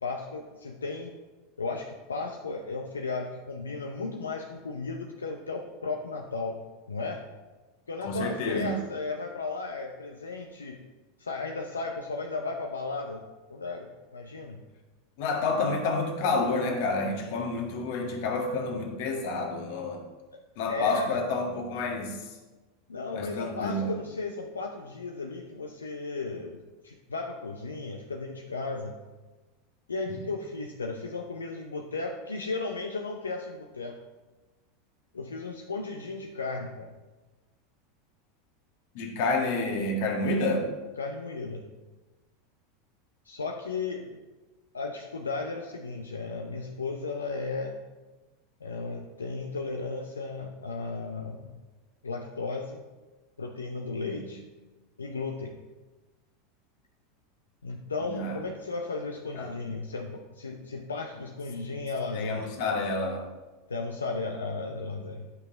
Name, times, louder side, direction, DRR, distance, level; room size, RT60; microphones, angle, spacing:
voice 1, 0.0-1.2 1.6-6.6 6.9-7.2 7.9-10.8 11.2-14.6 20.3-20.4 20.7-21.1 22.9-29.0 29.9-34.0 35.1-37.0 41.0-41.7 43.2-44.2 44.7-47.7 48.6-51.5 52.0-52.8 53.4-54.4 55.0-55.6 57.6-62.5 63.7-65.2, left 3 dB, 90° left, 2 dB, 0.5 m, -35 dB
voice 2, 8.0-8.8 15.2-20.0 20.6-22.3 23.1-23.9 30.1-30.2 38.9-40.7 54.0-54.2 58.1-58.4 59.3-59.5 62.1-63.3, left 3 dB, 60° left, 2 dB, 1.5 m, -29 dB
9.5 x 5.6 x 3.9 m, 1.2 s
hypercardioid pair, 90°, 0 cm